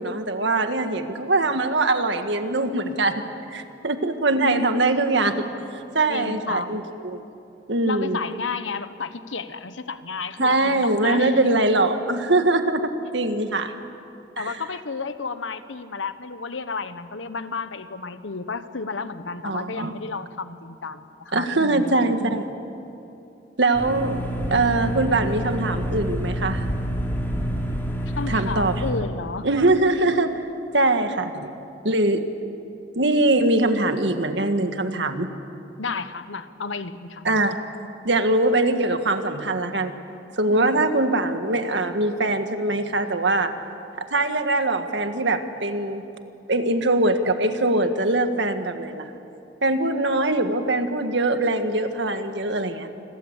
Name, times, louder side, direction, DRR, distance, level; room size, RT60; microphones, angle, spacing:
voice 1, 0.0-3.2 3.5-5.4 5.7-7.2 7.7-8.2 10.4-13.7 14.4-14.6 19.4-20.0 21.3-22.5 23.6-24.2 24.5-26.6 28.3-28.7 29.4-30.4 30.7-31.5 31.8-32.2 33.0-35.3 37.2-37.6 38.0-39.9 40.4-43.6 44.0-46.0 46.5-49.1 49.6-52.9, right 2 dB, 70° right, 7 dB, 1.8 m, -22 dB
voice 2, 4.3-4.7 6.1-6.8 7.9-11.4 14.4-21.9 28.1-29.5 30.2-30.5 35.8-37.4 40.5-40.8, left 4 dB, 90° left, 11 dB, 1.2 m, -32 dB
sound 1, 23.7-28.9, equal, 10° left, 3.4 m, -27 dB
28.5 x 22.0 x 8.3 m, 2.8 s
head